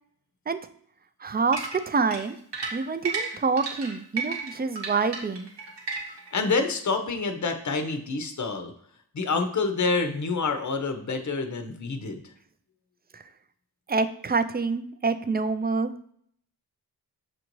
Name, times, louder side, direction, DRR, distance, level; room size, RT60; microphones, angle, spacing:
voice 1, 1.2-2.4 2.7-5.5 13.1-13.2 13.9-15.9, right 4 dB, 25° right, 10 dB, 0.3 m, -26 dB
sound 1, 1.5-6.3, right 4 dB, 80° right, 1.1 m, -33 dB
voice 2, 6.1-8.7 9.1-12.2, left 4 dB, 45° left, 6 dB, 0.7 m, -27 dB
6.1 x 2.6 x 3.0 m, 0.63 s
cardioid pair, 45°, 41 cm